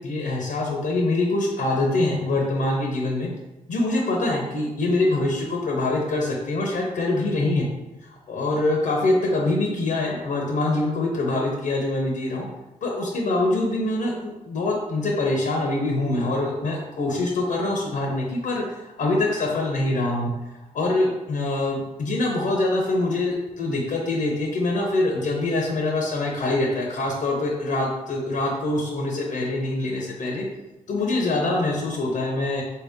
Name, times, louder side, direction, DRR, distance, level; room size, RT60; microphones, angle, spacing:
voice 1, 0.0-3.3 3.7-7.7 8.0-12.5 12.8-18.6 19.0-20.3 20.7-30.4 30.9-32.6, left 2 dB, 70° left, -1 dB, 0.7 m, -24 dB
4.0 x 2.7 x 3.5 m, 1.0 s
wide cardioid pair, 125°, 14 cm